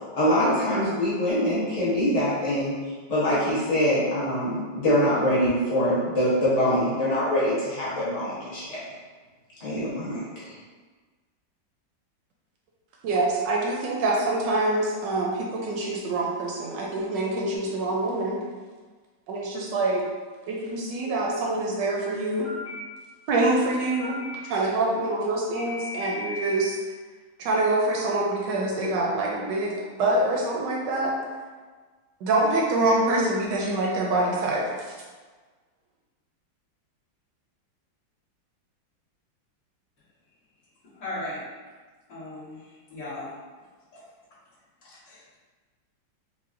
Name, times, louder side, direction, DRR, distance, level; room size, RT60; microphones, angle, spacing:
voice 1, 0.1-2.7 3.1-8.8 9.6-10.5, equal, 45° left, -10 dB, 0.5 m, -24 dB
voice 2, 13.0-18.4 19.3-20.0 20.5-22.5 23.3-24.2 24.4-26.8 27.4-31.1 32.2-34.9, right 2 dB, 75° right, -2 dB, 1.1 m, -25 dB
Telephone, 17.5-18.1 21.0-21.6 22.4-22.7 24.0-24.3 25.6-26.6, left 2 dB, 20° right, 0.4 m, -36 dB
voice 3, 41.0-41.5 42.1-43.3 43.9-44.0 44.8-45.4, left 1 dB, 65° left, -12 dB, 2.2 m, -37 dB
5.7 x 2.1 x 2.5 m, 1.4 s
omnidirectional pair, 2.1 m